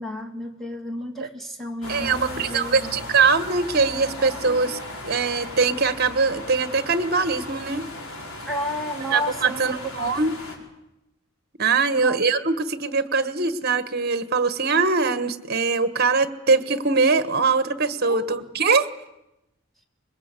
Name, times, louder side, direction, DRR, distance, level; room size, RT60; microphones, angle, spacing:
voice 1, 0.0-3.0 4.2-4.8 8.5-10.1 12.0-12.2 18.0-18.4, equal, ahead, 3 dB, 2.5 m, -32 dB
sound 1, 1.8-10.6, left 1 dB, 85° left, 5.0 m, -37 dB
voice 2, 1.9-4.8 5.0-7.8 9.1-10.3 11.6-18.9, right 4 dB, 50° right, 12 dB, 1.4 m, -22 dB
25.0 x 22.0 x 8.4 m, 0.92 s
head